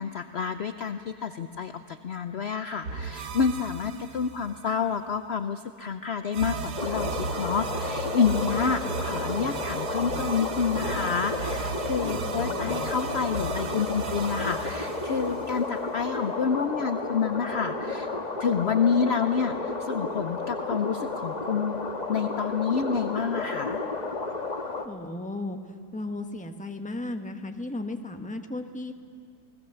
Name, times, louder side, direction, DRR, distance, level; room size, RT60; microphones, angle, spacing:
voice 1, 0.0-18.1 18.4-21.8 22.1-23.8, left 6 dB, 55° left, 9 dB, 0.8 m, -28 dB
sound 1, 2.8-4.7 6.3-16.1, right 4 dB, 85° right, 1.7 m, -35 dB
sound 2, 6.8-24.9, left 3 dB, 30° left, 1.3 m, -32 dB
voice 2, 12.0-12.6 24.8-25.6 25.9-28.9, left 2 dB, 5° left, 6 dB, 1.0 m, -35 dB
29.5 x 19.5 x 7.0 m, 2.2 s
omnidirectional pair, 1.7 m